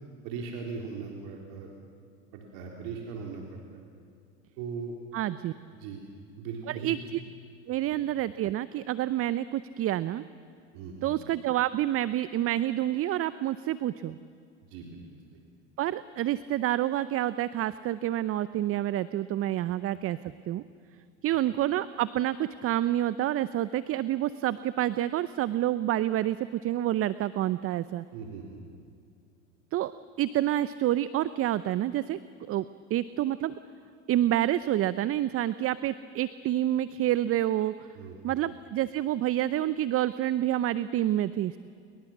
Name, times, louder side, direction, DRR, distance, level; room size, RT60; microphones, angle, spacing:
voice 1, 0.2-1.7 2.3-3.6 4.6-5.0 5.8-6.0 6.4-7.0 10.7-11.1 14.7-15.0 19.6-19.7 28.1-28.6 37.9-38.4, right 5 dB, 65° right, 0 dB, 3.9 m, -39 dB
voice 2, 5.1-5.5 6.7-7.2 7.7-10.2 11.0-14.2 15.8-20.2 20.5-20.6 21.2-28.0 29.7-29.9 30.2-32.2 32.5-32.6 32.9-33.5 34.1-37.7 38.2-41.6, right 13 dB, 40° right, 16 dB, 0.7 m, -28 dB
29.0 x 23.0 x 7.4 m, 2.3 s
hypercardioid pair, 90°, 37 cm